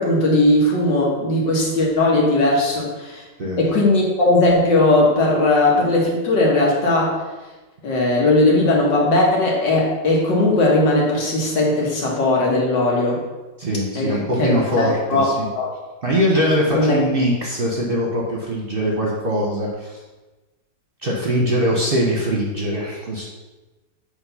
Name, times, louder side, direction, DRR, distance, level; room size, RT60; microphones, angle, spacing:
voice 1, 0.0-3.2 3.6-7.2 7.8-13.2 14.0-15.2 15.6-15.7 16.7-17.0, left 2 dB, 75° left, -3 dB, 2.3 m, -18 dB
voice 2, 13.6-15.5 16.0-20.0 21.0-23.3, equal, 35° right, -2 dB, 1.0 m, -22 dB
8.0 x 3.5 x 5.5 m, 1.2 s
omnidirectional pair, 2.0 m